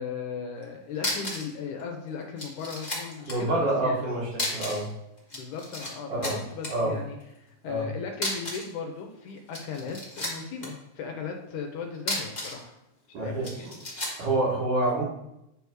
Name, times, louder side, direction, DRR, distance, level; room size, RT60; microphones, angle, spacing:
voice 1, 0.0-4.0 5.3-12.8 13.2-13.7, left 5 dB, 85° left, 3 dB, 2.2 m, -37 dB
sound 1, 0.6-0.7 1.0-1.5 1.8-1.9 2.4-3.4 4.3-4.9 5.2-5.9 6.2-6.7 8.1-8.7 9.4-10.7 11.9-12.6 13.4-14.2, left 1 dB, 30° left, 0.8 m, -33 dB
voice 2, 3.3-4.9 6.1-6.4 6.7-6.9 7.7-7.9 13.1-13.7 14.2-15.0, right 2 dB, 90° right, -4 dB, 3.4 m, -27 dB
8.9 x 3.5 x 4.6 m, 0.87 s
omnidirectional pair, 3.4 m